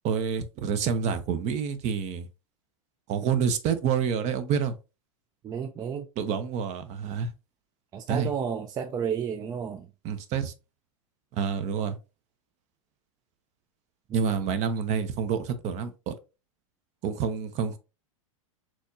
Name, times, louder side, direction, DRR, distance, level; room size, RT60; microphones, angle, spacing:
voice 1, 0.0-2.3 3.1-4.7 6.2-7.3 8.1-8.3 10.0-10.5 11.3-12.0 14.1-16.1 17.0-17.8, right 7 dB, 40° right, 0.7 m, -28 dB
voice 2, 5.4-6.1 7.9-9.9 14.1-14.3, right 7 dB, 20° right, 0.4 m, -32 dB
4.1 x 3.0 x 2.5 m
hypercardioid pair, 105°, 17 cm